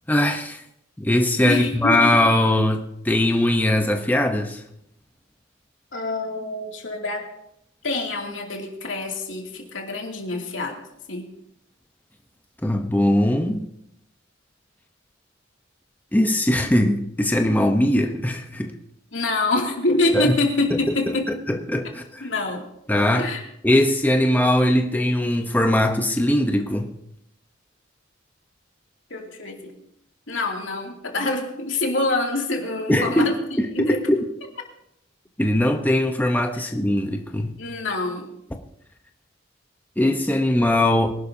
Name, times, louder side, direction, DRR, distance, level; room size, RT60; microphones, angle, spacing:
voice 1, 0.1-0.6 1.0-4.6 12.6-13.6 16.1-18.7 20.1-20.4 21.1-21.2 21.5-22.3 22.9-23.3 23.6-26.9 32.9-34.2 35.4-37.6 40.0-41.1, left 1 dB, 10° left, 4 dB, 0.9 m, -20 dB
voice 2, 1.4-2.2 5.9-7.3 7.8-10.8 11.1-11.3 19.1-21.3 22.2-22.7 23.1-23.5 29.1-29.8 30.3-33.4 33.7-34.0 37.6-38.3, left 2 dB, 80° left, 1 dB, 2.7 m, -26 dB
24.0 x 11.5 x 2.8 m, 0.78 s
head